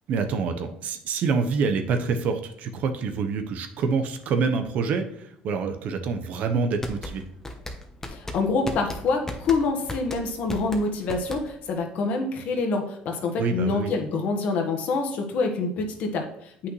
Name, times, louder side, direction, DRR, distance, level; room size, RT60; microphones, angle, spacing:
voice 1, 0.1-7.2 13.4-13.9, right 5 dB, 60° right, 7 dB, 0.9 m, -26 dB
sound 1, 6.8-11.8, left 1 dB, 15° left, 1.0 m, -35 dB
voice 2, 8.1-16.7, left 3 dB, 60° left, 3 dB, 1.4 m, -26 dB
8.3 x 5.8 x 3.2 m, 0.69 s
cardioid pair, 105°, 3 cm